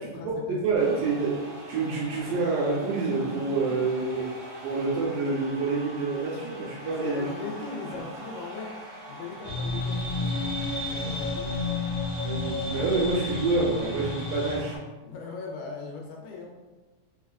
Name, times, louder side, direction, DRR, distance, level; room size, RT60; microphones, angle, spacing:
voice 1, 0.0-0.8 3.7-3.8 6.8-8.8 9.1-11.8 15.0-16.6, left 4 dB, 80° left, 0 dB, 1.9 m, -39 dB
voice 2, 0.6-1.4 1.7-4.2 4.6-7.2 7.9-8.0 12.2-14.8, right 3 dB, 90° right, -6 dB, 2.2 m, -27 dB
sound 1, 0.7-14.8, equal, 55° right, 0.8 m, -43 dB
sound 2, 9.4-14.6, left 2 dB, 60° left, 1.3 m, -31 dB
5.1 x 2.2 x 2.4 m, 1.2 s
omnidirectional pair, 3.8 m